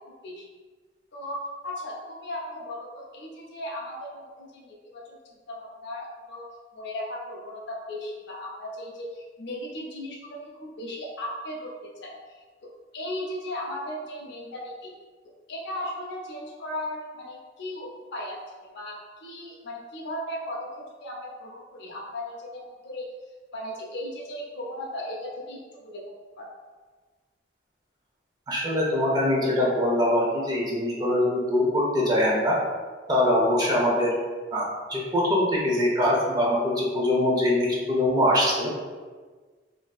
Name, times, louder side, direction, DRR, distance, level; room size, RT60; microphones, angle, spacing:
voice 1, 1.1-5.2 5.5-6.4 6.7-12.1 12.6-14.9 15.5-23.1 23.5-25.6 25.8-26.5, left 1 dB, 65° left, -3 dB, 0.6 m, -36 dB
voice 2, 28.5-32.6 33.1-34.1 34.5-38.7, left 1 dB, 20° right, -4 dB, 0.6 m, -23 dB
3.4 x 2.6 x 2.3 m, 1.4 s
head